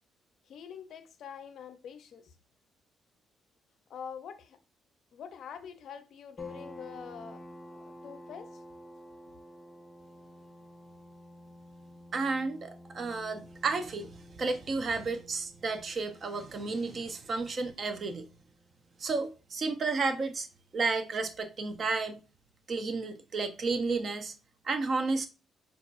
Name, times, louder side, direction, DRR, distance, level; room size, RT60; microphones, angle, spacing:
voice 1, 0.5-2.3 3.9-4.6 5.1-8.6, left 7 dB, 70° left, 0.5 m, -45 dB
sound 1, 6.4-19.6, equal, 15° left, 0.5 m, -51 dB
voice 2, 12.1-18.3 19.0-20.5 20.7-22.2 22.7-24.3 24.6-25.3, right 3 dB, 45° right, 0.5 m, -32 dB
5.2 x 2.3 x 2.4 m
cardioid pair, 90°, 0 cm